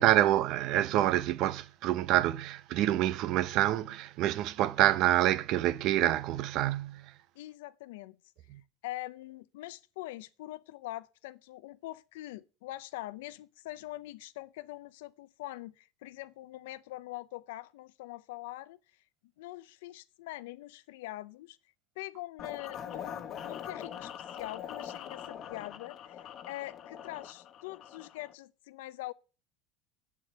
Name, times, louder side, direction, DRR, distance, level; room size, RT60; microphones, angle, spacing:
voice 1, 0.0-7.1 8.5-8.6, right 13 dB, 60° right, 0.8 m, -27 dB
voice 2, 7.3-8.2 8.8-18.8 19.4-21.6 22.0-29.1, left 17 dB, 80° left, 0.6 m, -43 dB
sound 1, 22.4-28.3, left 9 dB, 45° left, 1.3 m, -43 dB
8.4 x 7.4 x 7.6 m
supercardioid pair, 95°, 0 cm